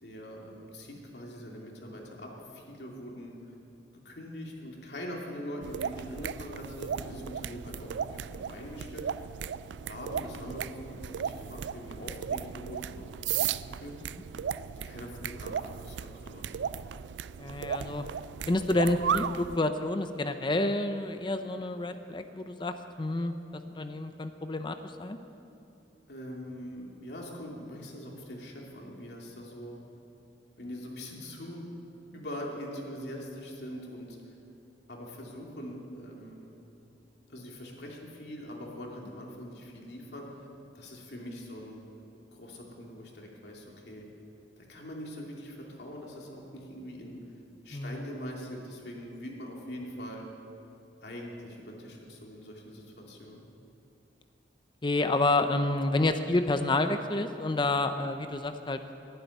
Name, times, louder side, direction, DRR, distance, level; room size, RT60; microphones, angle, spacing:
voice 1, 0.0-3.3 4.0-9.0 9.9-13.1 13.4-13.9 14.8-16.4 26.1-29.8 30.6-31.6 32.1-34.2 34.9-36.5 37.3-40.5 40.7-41.8 42.3-44.1 44.7-47.2 47.6-50.3 51.0-53.4, equal, 70° left, -1 dB, 2.8 m, -42 dB
sound 1, 5.6-19.6, right 8 dB, 90° right, 0.4 m, -36 dB
voice 2, 17.4-18.0 18.5-25.2 47.7-48.0 54.8-58.8, left 2 dB, 25° left, 8 dB, 0.6 m, -29 dB
11.5 x 11.5 x 9.6 m, 2.7 s
head